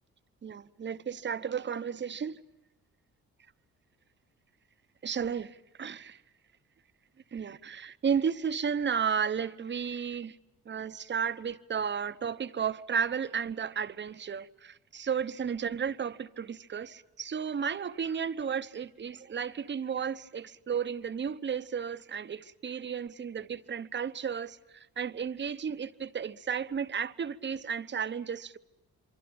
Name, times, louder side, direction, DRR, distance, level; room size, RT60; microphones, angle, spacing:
voice 1, 0.4-2.4 5.0-6.2 7.3-10.3 10.7-28.6, right 7 dB, 40° right, 0.9 m, -33 dB
27.5 x 24.0 x 8.7 m
cardioid pair, 90°, 30 cm